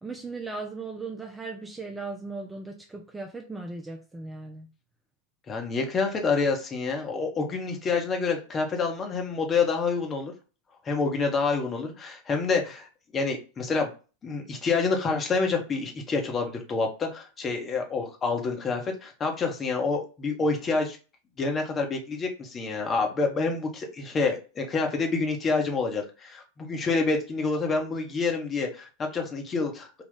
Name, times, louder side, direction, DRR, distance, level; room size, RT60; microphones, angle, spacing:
voice 1, 0.0-4.7, right 3 dB, 10° right, 3 dB, 0.5 m, -37 dB
voice 2, 5.5-10.3 10.8-12.9 13.1-13.9 14.2-21.0 21.4-29.9, left 4 dB, 20° left, 2 dB, 0.9 m, -27 dB
3.8 x 2.4 x 3.7 m, 0.34 s
figure-of-eight pair, 90°, 0 cm